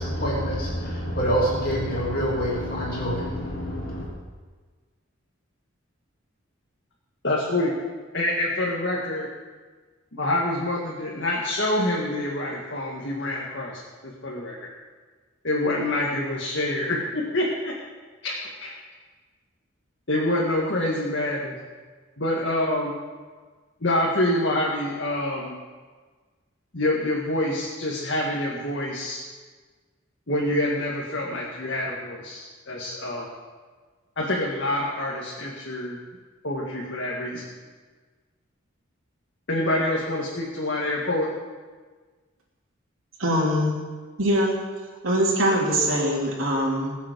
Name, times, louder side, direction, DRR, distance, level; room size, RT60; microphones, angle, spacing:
voice 1, 0.0-4.0, equal, 45° left, -5 dB, 3.2 m, -26 dB
voice 2, 7.2-7.7 8.1-9.3 10.1-14.6 15.4-17.7 18.2-18.7 20.1-21.5 22.2-23.0 23.8-25.5 26.7-29.2 30.3-33.3 34.2-36.0 36.4-37.5 39.5-41.3, left 1 dB, 60° left, -4 dB, 1.9 m, -26 dB
voice 3, 43.2-43.8 44.2-44.5 45.0-47.0, equal, 80° right, -3 dB, 2.9 m, -22 dB
21.0 x 7.4 x 5.3 m, 1.4 s
head